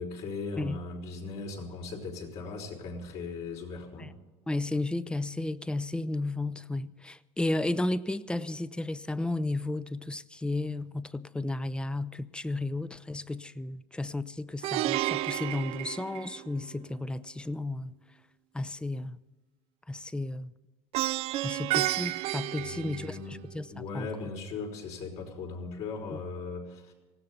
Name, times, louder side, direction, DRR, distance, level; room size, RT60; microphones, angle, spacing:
voice 1, 0.0-4.1 22.6-23.4 23.7-26.9, left 4 dB, 65° left, 5.1 m, -38 dB
voice 2, 4.5-17.9 18.5-19.2 19.9-20.5 21.4-24.1 26.1-26.2, left 2 dB, 10° left, 0.6 m, -33 dB
Plucked string instrument, 14.6-16.8 20.9-23.5, right 16 dB, 60° right, 0.4 m, -31 dB
19.0 x 16.0 x 4.2 m
supercardioid pair, 115°, 12 cm